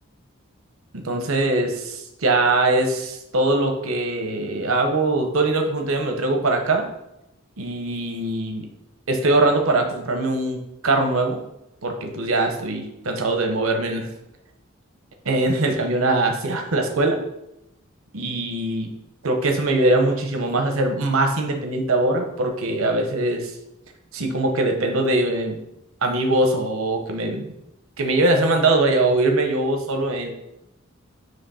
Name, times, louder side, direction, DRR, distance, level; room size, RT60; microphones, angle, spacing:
voice 1, 0.9-6.9 7.6-8.7 9.1-11.4 11.8-14.1 15.2-17.2 18.1-18.9 19.2-23.5 24.1-25.6 26.0-27.5 28.0-30.3, right 2 dB, 90° right, 4 dB, 1.0 m, -22 dB
7.7 x 3.2 x 5.6 m, 0.87 s
head